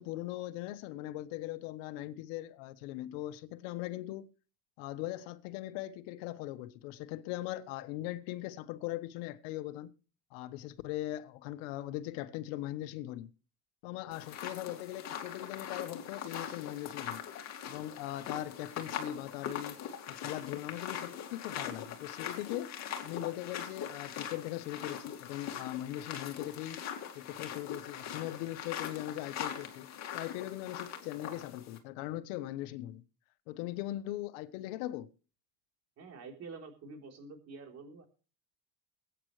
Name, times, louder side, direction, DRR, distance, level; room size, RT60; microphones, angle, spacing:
voice 1, 0.0-4.3 4.8-9.9 10.3-13.3 13.8-17.2 17.7-19.8 20.1-22.8 23.0-26.8 27.1-33.0 33.5-35.1, left 15 dB, 85° left, 1.2 m, -40 dB
sound 1, 14.1-31.8, left 8 dB, 45° left, 2.4 m, -42 dB
voice 2, 36.0-38.0, right 4 dB, 45° right, 3.8 m, -47 dB
22.0 x 9.1 x 3.2 m
cardioid pair, 140°, 38 cm